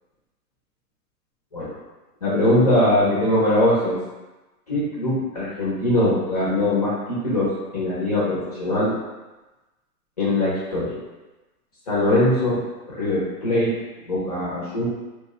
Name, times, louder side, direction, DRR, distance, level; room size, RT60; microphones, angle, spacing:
voice 1, 2.2-4.0 4.7-8.9 10.2-11.0 11.9-13.7 14.0-14.9, left 1 dB, 25° left, -7 dB, 0.5 m, -21 dB
2.8 x 2.1 x 3.4 m, 1.1 s
hypercardioid pair, 170°, 48 cm